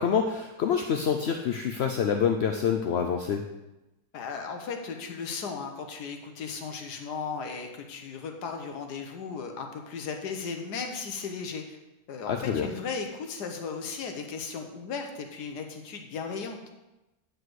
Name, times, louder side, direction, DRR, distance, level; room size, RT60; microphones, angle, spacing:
voice 1, 0.0-3.4 12.3-12.7, left 7 dB, 65° left, 4 dB, 0.6 m, -26 dB
voice 2, 4.1-11.8 12.1-16.6, left 5 dB, 85° left, 4 dB, 1.5 m, -36 dB
9.5 x 5.0 x 6.2 m, 1.0 s
omnidirectional pair, 1.7 m